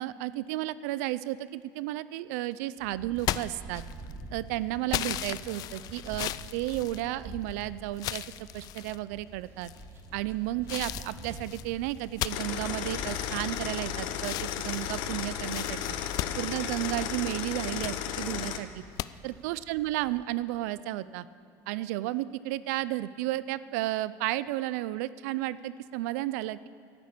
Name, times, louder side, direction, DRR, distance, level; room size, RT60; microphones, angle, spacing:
voice 1, 0.0-3.8 4.3-8.3 8.5-9.7 10.1-16.0 16.4-18.8 19.2-21.3 21.7-26.7, right 16 dB, 85° right, 17 dB, 0.5 m, -33 dB
sound 1, 2.8-20.2, right 2 dB, 35° right, 2.6 m, -47 dB
sound 2, 3.2-4.2 4.9-7.5 8.0-9.0 9.6-10.1 10.7-13.8 14.2-17.2 17.6-18.0 19.0-19.1, left 14 dB, 50° left, 0.4 m, -36 dB
sound 3, 12.3-18.6, left 10 dB, 70° left, 0.9 m, -34 dB
11.5 x 10.5 x 8.4 m, 2.5 s
cardioid pair, 125°, 8 cm